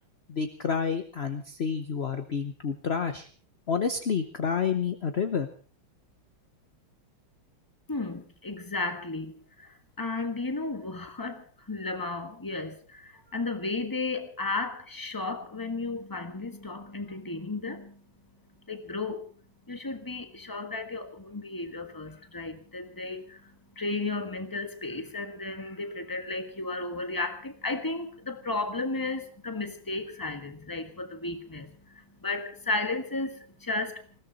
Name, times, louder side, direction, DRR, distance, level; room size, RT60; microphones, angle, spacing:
voice 1, 0.3-3.3 3.7-5.5, left 6 dB, 50° left, 0.7 m, -29 dB
voice 2, 7.9-18.0 18.7-19.3 19.7-34.1, left 3 dB, 10° left, 1.3 m, -34 dB
20.0 x 16.5 x 4.1 m
omnidirectional pair, 2.3 m